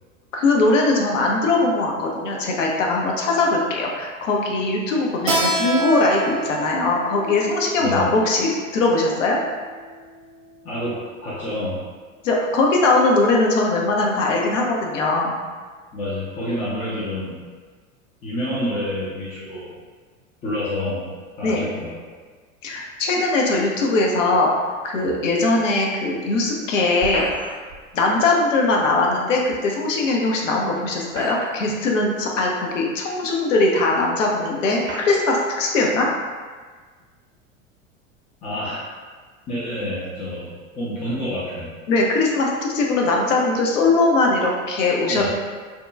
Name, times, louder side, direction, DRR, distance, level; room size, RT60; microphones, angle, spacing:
voice 1, 0.3-9.4 12.2-15.4 21.4-21.7 22.6-24.5 24.8-27.2 27.9-36.1 41.9-45.3, left 2 dB, 65° left, -1 dB, 0.6 m, -20 dB
Keyboard (musical), 5.3-10.5, right 2 dB, 70° right, 0.5 m, -28 dB
voice 2, 7.8-8.1 10.6-11.8 15.9-17.4 18.2-19.7 20.4-21.1 21.4-21.9 38.4-38.8 39.5-40.5 40.8-41.7 45.1-45.3, left 1 dB, 20° left, -9 dB, 0.4 m, -28 dB
sound 1, 27.0-27.8 29.5-29.6 30.9-31.8 32.7-32.8 33.7-33.8 34.8-35.3, right 2 dB, 30° right, 0.6 m, -34 dB
2.8 x 2.1 x 2.2 m, 1.5 s
figure-of-eight pair, 85°, 41 cm